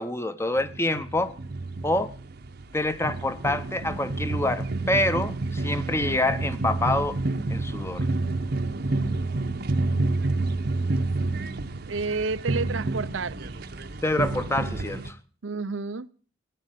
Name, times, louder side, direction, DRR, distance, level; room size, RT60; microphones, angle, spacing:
voice 1, 0.0-1.3 1.8-2.1 2.7-7.2 7.5-8.1 14.0-15.2, left 1 dB, 15° left, 0.9 m, -26 dB
sound 1, 0.6-15.1, right 2 dB, 55° right, 0.9 m, -29 dB
voice 2, 11.9-13.6 15.4-16.1, right 4 dB, 90° right, 0.7 m, -30 dB
17.0 x 8.6 x 9.1 m
head